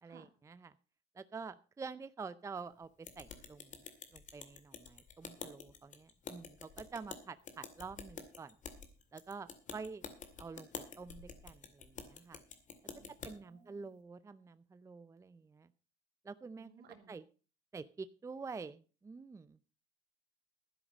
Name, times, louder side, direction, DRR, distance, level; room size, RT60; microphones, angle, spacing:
voice 1, 0.0-0.7 1.1-3.8 4.1-8.6 9.1-10.1 10.4-12.4 13.2-15.7 16.2-16.7 17.1-17.2 17.7-19.6, right 4 dB, 20° right, 14 dB, 0.5 m, -48 dB
sound 1, 3.0-13.3, left 6 dB, 50° left, 2.2 m, -49 dB
voice 2, 13.0-13.9 16.6-17.2, right 7 dB, 70° right, 6 dB, 2.8 m, -61 dB
12.0 x 10.0 x 5.3 m, 0.36 s
cardioid pair, 110°, 17 cm